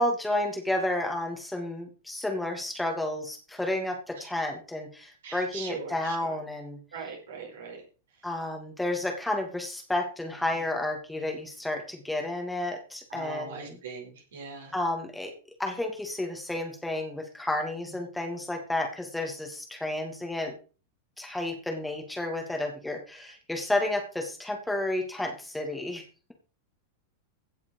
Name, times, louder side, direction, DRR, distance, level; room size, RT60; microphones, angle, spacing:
voice 1, 0.0-6.8 8.2-13.8 14.7-15.3 15.6-20.5 21.2-26.0, left 1 dB, 5° left, 2 dB, 2.6 m, -31 dB
voice 2, 5.2-6.4 6.9-7.8 10.5-10.6 13.1-14.7, right 4 dB, 60° right, 2 dB, 5.1 m, -40 dB
16.5 x 7.0 x 5.0 m, 0.37 s
figure-of-eight pair, 90°, 0 cm